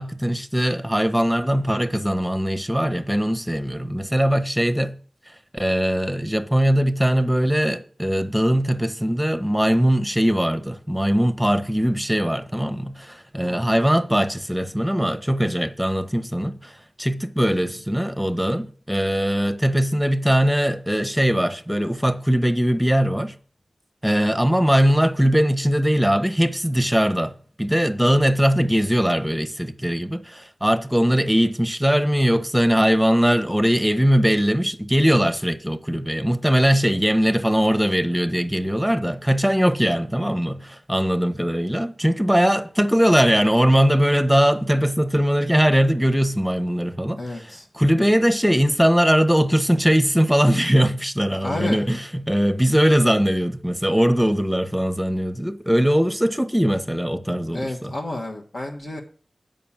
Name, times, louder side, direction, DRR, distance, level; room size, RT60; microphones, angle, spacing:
voice 1, 0.0-4.9 5.5-23.3 24.0-57.9, equal, 5° right, 1.0 m, -20 dB
voice 2, 47.2-47.7 51.4-51.9 57.5-59.0, left 2 dB, 70° left, 1.4 m, -31 dB
8.5 x 5.5 x 7.2 m
cardioid pair, 40°, 0 cm